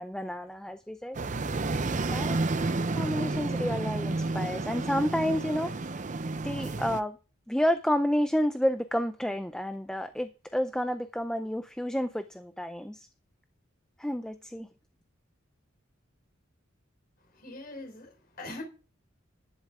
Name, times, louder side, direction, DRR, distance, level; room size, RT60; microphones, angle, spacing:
voice 1, 0.0-1.5 1.8-2.7 3.0-5.9 6.4-7.2 7.5-13.1 14.0-14.7, equal, 5° left, 0.4 m, -30 dB
sound 1, 1.1-7.0, right 3 dB, 40° right, 0.6 m, -31 dB
voice 2, 17.2-18.6, left 2 dB, 45° left, 4.7 m, -42 dB
11.0 x 11.0 x 3.6 m
head